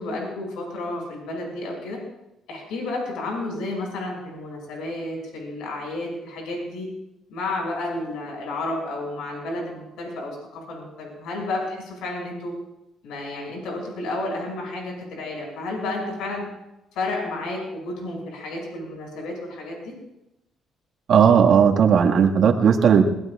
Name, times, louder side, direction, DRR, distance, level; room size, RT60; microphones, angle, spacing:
voice 1, 0.0-2.0 2.5-6.9 7.3-12.5 13.0-16.4 16.9-19.9, left 2 dB, 85° left, -1 dB, 6.1 m, -31 dB
voice 2, 21.1-23.0, right 7 dB, 60° right, 1 dB, 1.8 m, -16 dB
22.0 x 21.0 x 2.5 m, 0.88 s
cardioid pair, 100°, 0 cm